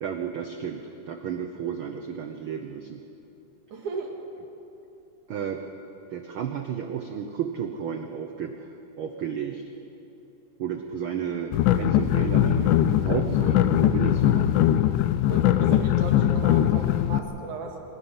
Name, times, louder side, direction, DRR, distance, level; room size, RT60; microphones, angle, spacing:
voice 1, 0.0-3.0 5.3-5.6 6.1-8.7 9.0-9.6 10.6-14.6, right 7 dB, 85° right, 5 dB, 1.1 m, -32 dB
voice 2, 3.7-4.2 15.3-17.8, right 3 dB, 70° right, 2 dB, 3.3 m, -35 dB
sound 1, 11.5-17.2, left 11 dB, 80° left, 2.2 m, -21 dB
26.5 x 13.0 x 9.9 m, 2.9 s
omnidirectional pair, 3.7 m